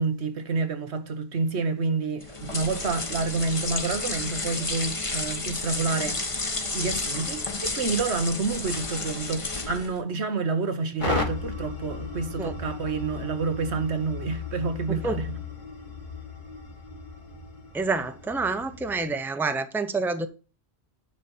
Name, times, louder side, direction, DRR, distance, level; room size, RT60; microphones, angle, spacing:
voice 1, 0.0-15.4, right 4 dB, 85° right, 1.4 m, -29 dB
sound 1, 2.2-10.0, left 3 dB, 30° left, 1.2 m, -31 dB
sound 2, 11.0-19.1, left 4 dB, 45° left, 1.9 m, -35 dB
voice 2, 14.9-15.2 17.7-20.3, right 3 dB, ahead, 0.7 m, -28 dB
10.0 x 4.2 x 7.0 m
omnidirectional pair, 1.1 m